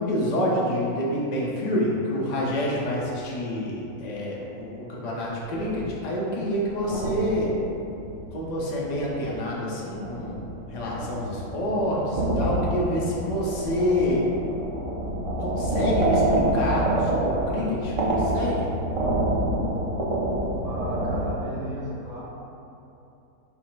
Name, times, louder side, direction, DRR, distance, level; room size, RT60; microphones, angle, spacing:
voice 1, 0.0-7.5 8.3-14.2 15.4-18.7, equal, 40° left, -5 dB, 0.6 m, -27 dB
sound 1, 5.3-6.0 6.5-9.2 9.7-21.3, right 1 dB, 65° right, 0.3 m, -27 dB
voice 2, 20.6-22.2, equal, 30° right, -8 dB, 1.0 m, -35 dB
5.5 x 2.0 x 4.5 m, 2.8 s
omnidirectional pair, 1.6 m